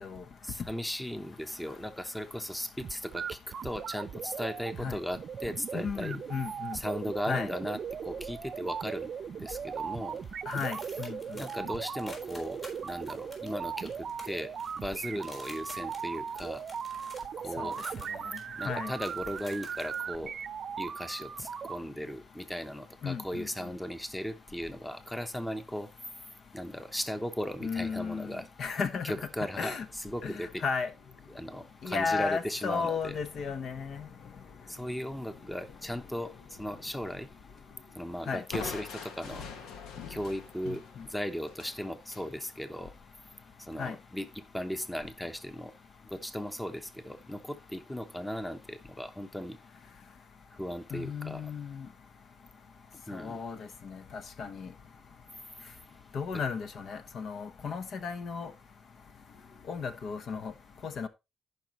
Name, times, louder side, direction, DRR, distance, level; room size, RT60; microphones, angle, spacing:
voice 1, 0.4-6.2 6.7-10.2 11.3-16.6 17.4-17.8 18.6-20.3 20.8-25.9 26.5-28.5 29.0-30.6 31.3-33.1 34.7-36.3 36.6-37.3 38.0-39.4 40.1-42.9 43.6-45.7 46.1-49.6 50.6-51.4 53.1-53.4 56.3-56.4, equal, 5° left, 1.0 m, -37 dB
sound 1, 2.8-21.8, right 7 dB, 55° right, 0.6 m, -38 dB
voice 2, 5.7-6.8 7.2-7.5 10.5-11.2 17.6-17.7 18.6-18.9 23.0-23.5 27.6-29.1 29.6-29.9 30.2-30.9 31.8-34.1 38.3-38.4 40.7-41.0 43.8-43.9 50.9-51.9 53.1-54.7 56.1-58.5 59.7-60.5 60.8-61.1, left 5 dB, 60° left, 1.1 m, -34 dB
sound 2, 7.8-8.3 8.6-9.0 9.5-20.0, left 2 dB, 30° left, 4.6 m, -52 dB
Crushing, 38.5-42.3, left 6 dB, 90° left, 1.4 m, -43 dB
15.0 x 5.5 x 3.0 m
cardioid pair, 90°, 0 cm